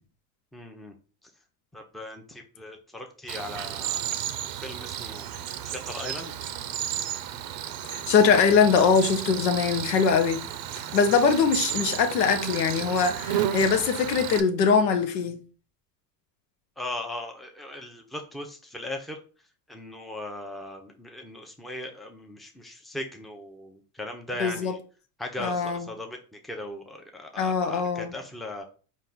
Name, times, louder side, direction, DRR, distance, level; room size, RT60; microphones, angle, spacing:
voice 1, 0.5-0.9 1.7-6.3 16.8-19.2 19.7-24.8 25.2-28.6, left 1 dB, ahead, 0.7 m, -38 dB
Cricket, 3.3-14.4, right 10 dB, 45° right, 0.6 m, -33 dB
voice 2, 7.9-10.4 10.9-15.4 24.4-24.7 25.4-25.9 27.4-28.1, left 5 dB, 85° left, 0.8 m, -22 dB
4.2 x 2.5 x 3.9 m
hypercardioid pair, 85°, 48 cm